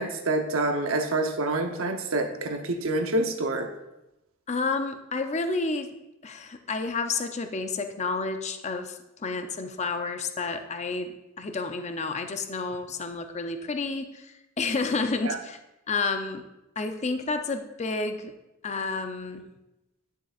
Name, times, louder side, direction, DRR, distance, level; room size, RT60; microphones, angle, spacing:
voice 1, 0.0-3.7 15.2-15.4, right 2 dB, 75° right, 5 dB, 0.8 m, -27 dB
voice 2, 4.5-5.9 6.2-15.6 15.9-16.4 16.8-18.3 18.6-19.5, left 3 dB, 35° left, 7 dB, 0.5 m, -30 dB
10.5 x 6.7 x 2.4 m, 0.93 s
head